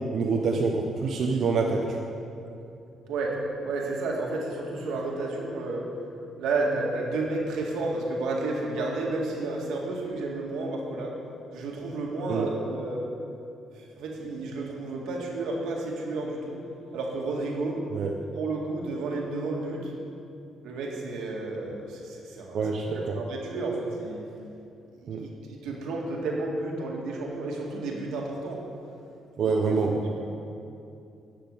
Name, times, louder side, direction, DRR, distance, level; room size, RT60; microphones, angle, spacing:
voice 1, 0.0-2.0 12.3-12.5 17.9-18.1 22.5-23.2 25.1-25.2 29.4-30.0, right 4 dB, 60° right, -1 dB, 1.0 m, -26 dB
voice 2, 3.6-5.9 6.4-11.1 11.5-13.0 13.8-16.6 16.9-17.8 18.3-19.9 20.6-22.6 22.9-24.3 25.0-25.3 25.6-28.6 29.7-29.8 30.0-30.2, right 2 dB, 85° right, -1 dB, 2.0 m, -31 dB
10.5 x 6.6 x 8.0 m, 2.7 s
cardioid pair, 90°, 0 cm